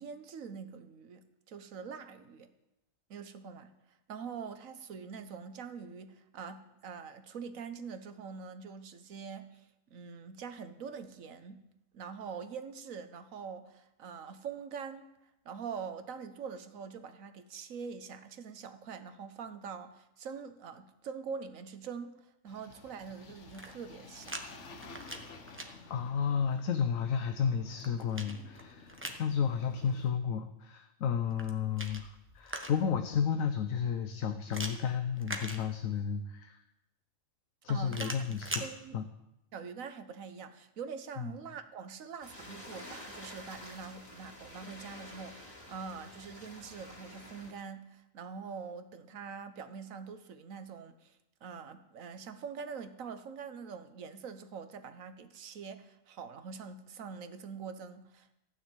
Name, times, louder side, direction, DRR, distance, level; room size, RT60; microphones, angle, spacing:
voice 1, 0.0-2.5 3.1-3.7 4.1-11.6 11.9-15.1 15.4-24.4 37.7-38.1 38.6-39.0 39.5-58.4, right 6 dB, 85° right, 10 dB, 1.4 m, -44 dB
sound 1, 22.5-30.1, left 3 dB, 65° left, 1.4 m, -52 dB
sound 2, 23.4-24.4 24.8-25.7 27.4-29.3 31.2-33.0 34.5-36.1 37.9-38.7, right 1 dB, 10° right, 1.1 m, -42 dB
voice 2, 25.9-36.6 37.6-38.6 38.9-39.0 41.2-41.4, left 7 dB, 90° left, 7 dB, 1.2 m, -32 dB
sound 3, 42.2-47.5, left 1 dB, 30° left, 3.9 m, -49 dB
14.5 x 6.4 x 9.1 m, 0.88 s
omnidirectional pair, 1.4 m